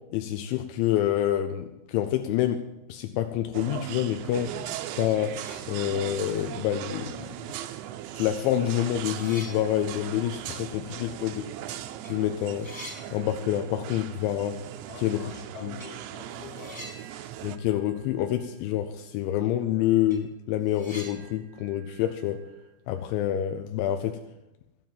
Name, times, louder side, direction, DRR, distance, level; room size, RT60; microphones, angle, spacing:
voice 1, 0.1-2.6 2.9-4.5 5.0-5.4 5.7-7.1 8.1-11.4 12.1-12.7 13.1-14.6 15.0-15.3 15.6-15.8 17.4-22.4 22.9-24.2, left 12 dB, 85° left, 7 dB, 3.0 m, -27 dB
sound 1, 3.5-17.6, right 12 dB, 85° right, 3.0 m, -38 dB
sound 2, 5.2-6.3 6.6-6.7 7.7-7.8 8.2-11.6 11.9-12.1 12.4-14.0 14.2-14.3 15.8-16.0 16.5-18.7 18.9-19.0 19.5-19.6 19.9-23.1, equal, 5° left, 3.7 m, -47 dB
voice 2, 14.9-16.8, left 5 dB, 60° left, 0 dB, 3.8 m, -46 dB
15.5 x 7.4 x 7.4 m, 0.92 s
omnidirectional pair, 5.2 m